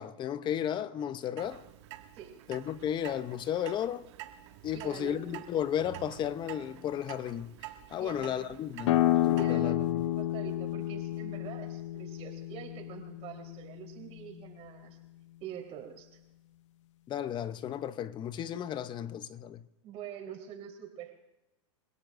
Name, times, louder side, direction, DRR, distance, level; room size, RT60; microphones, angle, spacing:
voice 1, 0.0-1.6 2.5-4.1 4.6-7.6 7.9-10.0 17.1-19.6, left 10 dB, 30° left, 0.6 m, -34 dB
Clock, 1.4-9.4, right 13 dB, 65° right, 1.9 m, -48 dB
voice 2, 2.1-2.5 4.7-5.4 8.0-8.5 9.4-15.0 15.4-16.2 19.8-21.2, right 9 dB, 40° right, 3.7 m, -45 dB
sound 1, 8.8-14.2, left 14 dB, 70° left, 0.7 m, -30 dB
30.0 x 17.5 x 2.5 m
hypercardioid pair, 120°, 16 cm